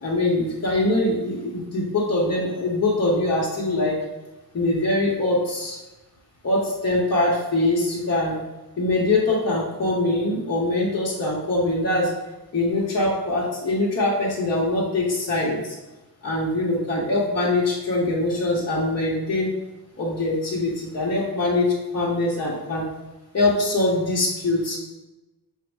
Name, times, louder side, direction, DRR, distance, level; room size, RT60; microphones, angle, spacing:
voice 1, 0.0-4.0 4.5-5.8 6.4-8.4 8.8-12.1 12.5-15.7 16.2-19.5 20.0-22.8 23.3-24.8, left 2 dB, 40° left, -5 dB, 0.8 m, -23 dB
5.1 x 2.0 x 4.5 m, 1.1 s
wide cardioid pair, 175°, 39 cm